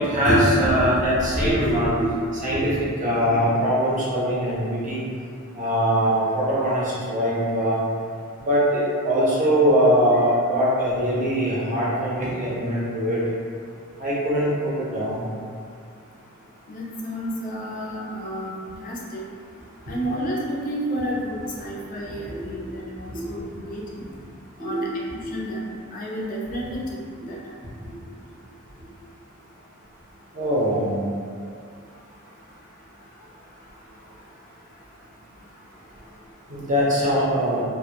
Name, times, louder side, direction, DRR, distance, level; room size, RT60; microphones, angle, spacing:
voice 1, 0.0-2.1 2.4-2.7 3.0-5.0 5.5-7.8 8.4-13.2 14.0-15.2 22.3-22.4 23.1-23.2 24.6-24.8 27.8-27.9 30.4-31.0 36.5-37.6, equal, 35° right, -8 dB, 0.6 m, -22 dB
voice 2, 16.7-19.2 19.9-24.0 24.6-24.9 25.3-25.6 25.9-26.8 27.3-27.4, equal, 40° left, -4 dB, 0.3 m, -31 dB
2.1 x 2.0 x 2.8 m, 2.3 s
head